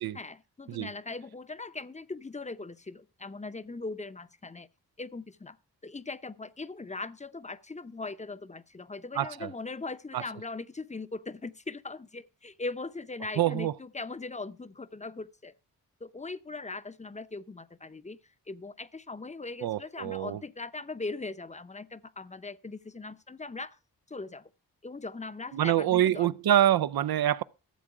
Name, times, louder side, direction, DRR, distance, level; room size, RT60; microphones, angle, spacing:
voice 1, 0.1-4.7 5.0-5.6 5.8-15.5 16.0-18.2 18.5-23.8 24.1-24.5 24.8-26.3, left 3 dB, 20° left, 0.8 m, -40 dB
voice 2, 9.2-9.5 10.1-10.2 13.4-13.7 19.6-20.4 25.5-27.4, right 12 dB, 70° right, 0.6 m, -26 dB
13.5 x 7.6 x 4.8 m
cardioid pair, 60°, 37 cm